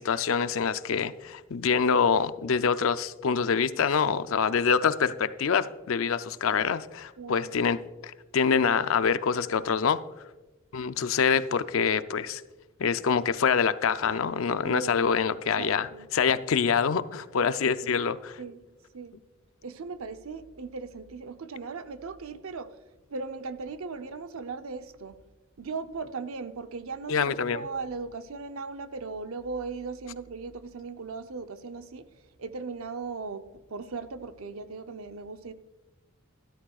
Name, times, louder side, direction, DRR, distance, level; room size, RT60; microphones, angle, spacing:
voice 1, 0.0-10.0 10.7-12.4 12.8-18.4 27.1-27.7, left 6 dB, 70° left, 13 dB, 0.5 m, -26 dB
voice 2, 7.2-7.5 14.6-15.1 15.6-16.1 17.8-17.9 18.4-18.6 18.9-19.2 19.6-22.7 23.1-25.2 25.6-32.1 32.4-33.4 33.7-35.5, right 4 dB, 90° right, 10 dB, 0.7 m, -38 dB
13.0 x 13.0 x 2.4 m, 1.2 s
head